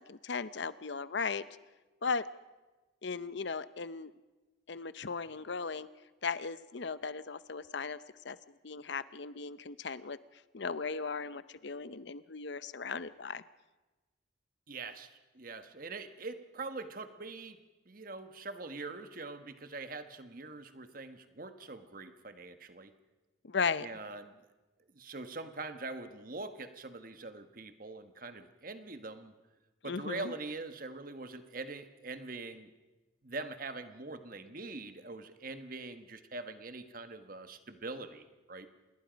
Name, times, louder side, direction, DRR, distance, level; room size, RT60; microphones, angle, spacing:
voice 1, 0.0-1.5 2.0-2.3 3.0-4.1 4.7-5.9 6.2-8.0 8.2-8.4 8.6-10.2 10.5-13.4 23.4-23.9 29.8-30.3, left 5 dB, 65° left, 15 dB, 0.7 m, -36 dB
voice 2, 14.7-17.6 17.9-22.9 23.8-24.4 24.9-29.3 29.8-32.7 33.2-38.7, right 3 dB, 45° right, 9 dB, 1.3 m, -43 dB
27.0 x 21.0 x 5.2 m, 1.2 s
head